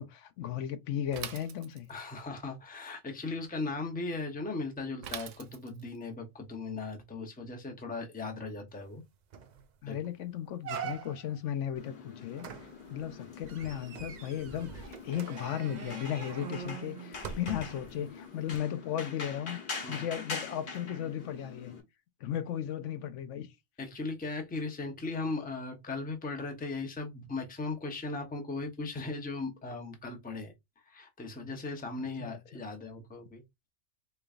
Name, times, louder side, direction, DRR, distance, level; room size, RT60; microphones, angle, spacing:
voice 1, 0.0-1.9 9.8-12.5 12.9-19.6 19.9-21.7 22.2-23.5 32.2-32.6, left 10 dB, 80° left, 1.0 m, -36 dB
Bicycle / Mechanisms, 1.1-2.1 5.0-6.0, right 9 dB, 90° right, 0.9 m, -42 dB
voice 2, 1.9-9.0 9.9-10.0 19.8-20.1 23.8-30.5 30.8-33.4, left 3 dB, 10° left, 0.6 m, -38 dB
sound 1, 8.9-9.0 9.3-9.6 10.0-10.1 10.6-11.4 12.4-17.9 18.5-18.6, right 7 dB, 60° right, 0.4 m, -43 dB
sound 2, 11.8-21.8, left 4 dB, 50° left, 1.1 m, -44 dB
3.8 x 3.3 x 2.4 m
omnidirectional pair, 1.2 m